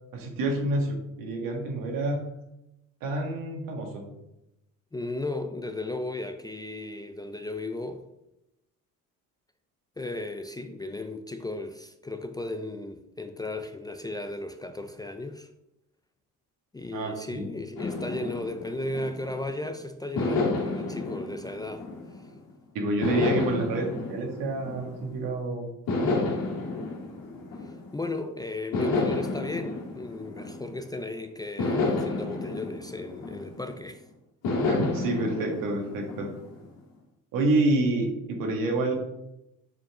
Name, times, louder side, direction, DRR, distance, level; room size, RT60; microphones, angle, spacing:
voice 1, 0.1-2.2 3.0-4.1 16.9-17.5 22.7-25.7 26.0-26.3 34.7-36.3 37.3-38.9, right 2 dB, 75° right, 2.0 m, -28 dB
voice 2, 4.9-8.1 10.0-15.5 16.7-21.9 22.1-22.3 27.6-34.0, left 2 dB, 10° left, 0.4 m, -35 dB
sound 1, 17.8-19.6 20.2-22.4 23.0-25.3 25.9-28.1 28.7-31.0 31.6-33.8 34.4-36.7, left 3 dB, 80° left, 2.4 m, -31 dB
6.8 x 5.5 x 3.8 m
cardioid pair, 115°, 33 cm